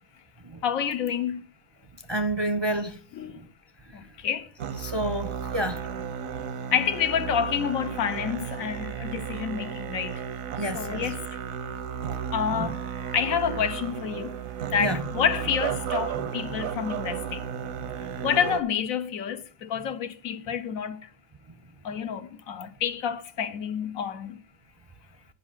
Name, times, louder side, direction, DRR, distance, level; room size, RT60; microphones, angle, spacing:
voice 1, 0.6-1.5 3.1-3.4 3.9-4.5 6.7-10.2 10.7-11.4 12.3-12.9 13.1-14.4 14.7-17.5 18.2-21.1 21.8-24.4, left 8 dB, 85° left, 1.3 m, -29 dB
voice 2, 2.1-3.0 3.3-3.5 3.9-4.0 4.8-6.1 10.5-11.0 12.5-12.7 14.8-15.0 16.1-16.6, right 1 dB, 30° right, 0.5 m, -30 dB
Musical instrument, 4.6-18.6, right 8 dB, 80° right, 1.2 m, -34 dB
9.4 x 5.3 x 7.4 m
omnidirectional pair, 1.4 m